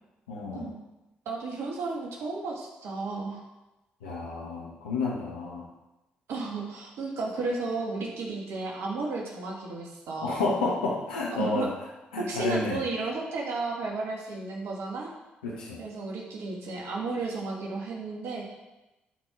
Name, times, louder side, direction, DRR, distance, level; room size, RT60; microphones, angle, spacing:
voice 1, 0.3-0.7 4.0-5.7 10.2-11.7 12.1-12.8 15.4-15.8, left 3 dB, 90° left, -3 dB, 1.1 m, -30 dB
voice 2, 1.3-3.4 6.3-10.4 11.3-11.7 12.3-15.1 15.8-18.5, right 3 dB, 70° right, -1 dB, 2.0 m, -33 dB
12.5 x 4.7 x 4.7 m, 1.0 s
hypercardioid pair, 40°, 5 cm